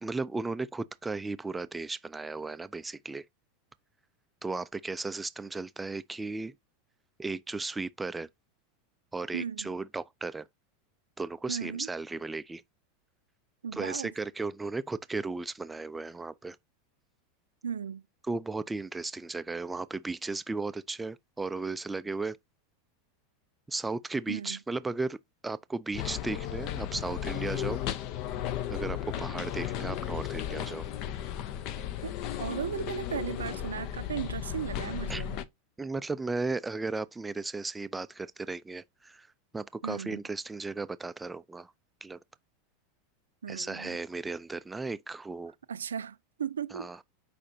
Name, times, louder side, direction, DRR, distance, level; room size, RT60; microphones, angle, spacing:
voice 1, 0.0-3.2 4.4-6.5 7.2-8.3 9.1-10.4 11.2-12.6 13.7-16.6 18.3-22.4 23.7-25.2 25.4-27.8 28.7-30.9 35.1-35.2 35.8-39.3 39.5-41.7 42.0-42.2 43.5-45.5 46.7-47.0, right 3 dB, 10° right, 0.4 m, -35 dB
voice 2, 9.3-9.7 11.5-11.9 13.6-14.1 17.6-18.0 24.3-24.6 32.0-35.4 39.8-40.2 43.4-44.0 45.7-46.9, right 7 dB, 70° right, 0.5 m, -36 dB
sound 1, 25.9-35.4, left 11 dB, 45° left, 0.6 m, -35 dB
8.4 x 5.0 x 2.7 m
figure-of-eight pair, 85°, 0 cm